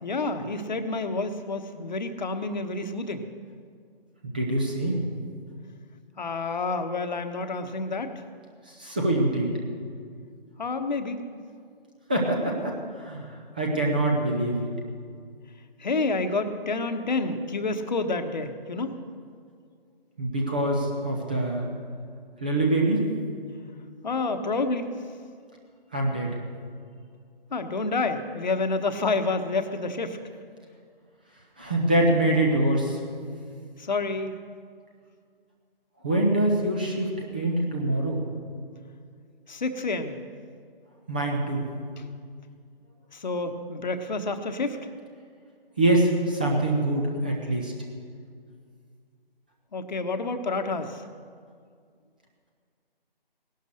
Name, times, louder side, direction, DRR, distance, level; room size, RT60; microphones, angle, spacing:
voice 1, 0.0-3.3 6.2-8.2 10.6-11.2 15.8-19.0 24.0-24.9 27.5-30.2 33.8-34.4 39.5-40.2 42.0-42.1 43.1-44.8 49.7-51.0, left 3 dB, 50° left, 8 dB, 1.2 m, -29 dB
voice 2, 4.2-5.1 8.7-9.5 12.1-13.3 13.6-14.7 20.2-21.7 22.4-23.0 25.9-26.3 31.6-33.0 36.0-38.2 41.1-41.7 45.8-47.7, right 1 dB, 10° right, -1 dB, 0.6 m, -24 dB
18.0 x 11.5 x 6.4 m, 2.1 s
figure-of-eight pair, 155°, 29 cm